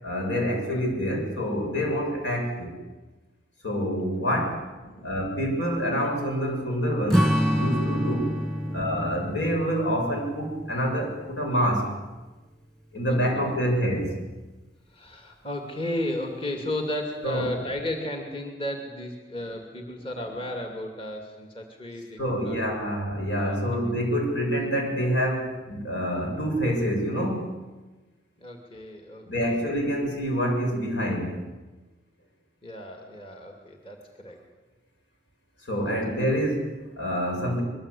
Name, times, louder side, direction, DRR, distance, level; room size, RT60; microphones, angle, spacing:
voice 1, 0.0-2.7 3.6-4.6 5.0-8.3 8.7-11.9 12.9-14.2 17.2-17.5 22.2-27.5 29.3-31.4 35.6-37.6, equal, 85° left, 1 dB, 7.6 m, -27 dB
voice 2, 4.8-5.4 7.5-8.3 8.6-9.3 13.1-14.0 14.9-22.6 23.4-23.6 28.4-29.6 32.6-34.4 35.8-36.0, left 1 dB, 30° left, 3 dB, 2.7 m, -35 dB
Strum, 7.1-11.8, equal, 5° left, 1.8 m, -28 dB
24.0 x 22.0 x 8.6 m, 1.2 s
head